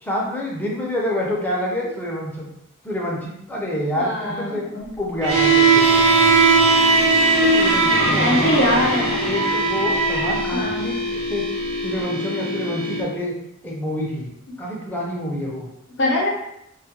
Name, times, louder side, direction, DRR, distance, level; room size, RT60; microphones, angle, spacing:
voice 1, 0.0-2.5 2.8-4.6 5.0-6.2 7.3-8.6 9.2-11.5 11.8-13.4 13.6-15.7, left 1 dB, 10° left, -3 dB, 0.4 m, -27 dB
voice 2, 3.9-4.9 8.2-9.2 10.5-10.9 16.0-16.3, left 1 dB, 55° left, -1 dB, 0.6 m, -22 dB
Bowed string instrument, 5.2-10.4, right 4 dB, 60° right, 0.4 m, -18 dB
sound 1, 5.3-13.0, left 1 dB, 85° right, 0.9 m, -26 dB
2.3 x 2.1 x 2.9 m, 0.80 s
head